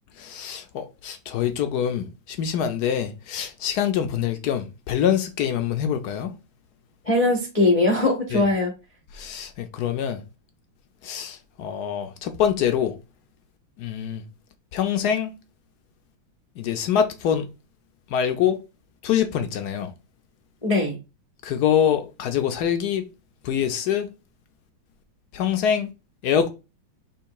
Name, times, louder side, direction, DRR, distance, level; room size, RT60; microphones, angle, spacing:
voice 1, 0.2-6.3 8.3-8.4 9.1-10.2 11.0-12.9 13.8-14.2 14.7-15.3 16.6-17.5 18.1-18.6 19.0-19.9 21.4-23.0 23.4-24.1 25.3-25.9 26.2-26.5, left 9 dB, 70° left, 1.0 m, -25 dB
voice 2, 7.0-8.7 20.6-21.0, left 2 dB, 35° left, 0.5 m, -20 dB
3.5 x 3.1 x 4.6 m
omnidirectional pair, 2.2 m